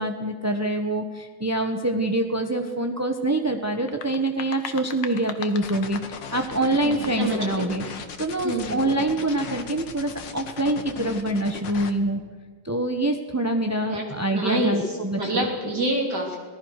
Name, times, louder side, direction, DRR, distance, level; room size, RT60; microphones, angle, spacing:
voice 1, 0.0-7.8 8.2-12.2 12.6-15.5, right 1 dB, 10° right, 5 dB, 0.7 m, -25 dB
sound 1, 3.7-7.4, left 7 dB, 80° left, 2.2 m, -39 dB
sound 2, 5.6-11.9, left 5 dB, 60° left, 2.2 m, -37 dB
voice 2, 6.8-7.8 8.4-8.9 13.9-14.1 14.3-16.4, right 2 dB, 50° right, 0 dB, 3.6 m, -27 dB
25.5 x 18.5 x 6.5 m, 1.5 s
omnidirectional pair, 2.3 m